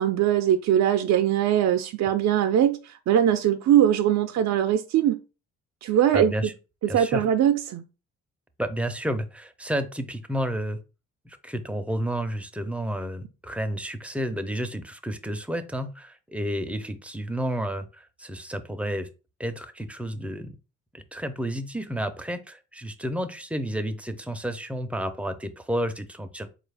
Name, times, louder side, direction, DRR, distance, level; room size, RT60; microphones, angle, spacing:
voice 1, 0.0-5.2 5.8-6.3 6.8-7.8, right 10 dB, 65° right, 0.4 m, -21 dB
voice 2, 6.1-6.5 6.9-7.2 8.6-10.8 11.2-19.1 19.4-20.6 20.9-26.5, equal, 5° right, 0.5 m, -31 dB
4.2 x 2.4 x 3.3 m
cardioid pair, 90°, 30 cm